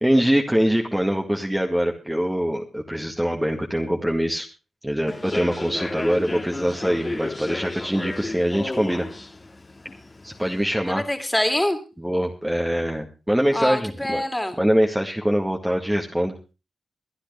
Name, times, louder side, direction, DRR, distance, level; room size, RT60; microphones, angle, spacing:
voice 1, 0.0-4.5 4.8-9.1 10.2-11.0 12.0-14.2 14.6-16.3, equal, 10° right, 1 dB, 2.0 m, -23 dB
Human voice / Subway metro underground, 5.1-10.6, left 2 dB, 30° left, 2.0 m, -33 dB
voice 2, 10.8-11.8 13.5-14.6, left 1 dB, 10° left, 7 dB, 3.0 m, -24 dB
23.5 x 9.9 x 3.4 m, 0.30 s
supercardioid pair, 45°, 0 cm